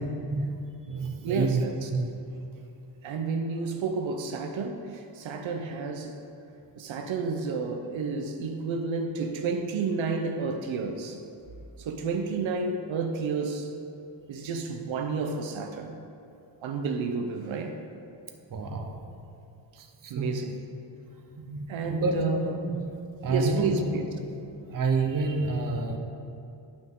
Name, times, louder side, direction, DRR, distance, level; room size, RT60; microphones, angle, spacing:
voice 1, 0.3-2.1 18.5-19.0 19.8-20.4 21.4-23.9 24.2-24.3 24.7-26.0, right 3 dB, 45° right, 3 dB, 0.8 m, -29 dB
voice 2, 1.2-1.9 3.0-6.2 6.8-11.2 11.8-13.7 14.3-15.9 16.6-17.8 20.1-20.6 21.7-22.7 23.3-24.1 24.7-24.8, right 4 dB, 85° right, 4 dB, 0.8 m, -31 dB
11.5 x 6.0 x 3.7 m, 2.6 s
wide cardioid pair, 140°, 45 cm